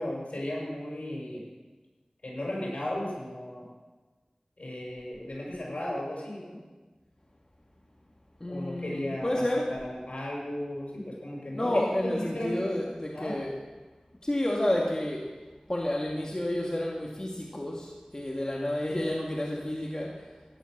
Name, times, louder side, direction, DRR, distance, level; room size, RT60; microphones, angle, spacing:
voice 1, 0.0-1.4 2.2-3.7 4.6-6.6 8.5-12.8 13.1-13.4, left 1 dB, 70° left, -4 dB, 6.4 m, -35 dB
voice 2, 8.4-9.7 11.5-13.5 14.2-15.2 15.7-20.1, left 1 dB, 30° left, -2 dB, 2.0 m, -30 dB
16.0 x 10.5 x 6.6 m, 1.3 s
wide cardioid pair, 50°, 2 cm